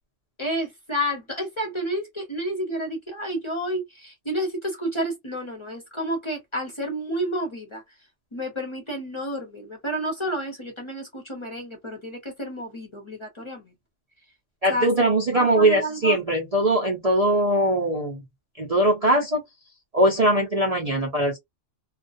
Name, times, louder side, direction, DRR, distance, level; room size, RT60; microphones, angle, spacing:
voice 1, 0.4-7.8 8.3-13.7 14.7-14.9 15.3-16.2, equal, 30° left, 0.7 m, -30 dB
voice 2, 14.6-18.2 18.6-19.4 19.9-21.4, right 1 dB, 45° right, 0.5 m, -21 dB
2.4 x 2.3 x 2.5 m
omnidirectional pair, 1.3 m